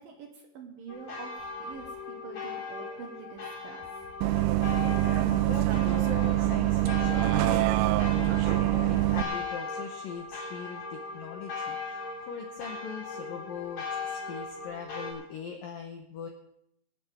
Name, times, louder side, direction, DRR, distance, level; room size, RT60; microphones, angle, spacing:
voice 1, 0.0-4.0, right 5 dB, 65° right, 2 dB, 2.5 m, -46 dB
sound 1, 0.9-15.1, left 4 dB, 40° left, 3.8 m, -39 dB
Bus, 4.2-9.2, right 16 dB, 90° right, 3.3 m, -25 dB
voice 2, 5.0-16.3, left 6 dB, 85° left, 3 dB, 1.9 m, -41 dB
25.0 x 9.7 x 3.6 m, 0.75 s
omnidirectional pair, 5.7 m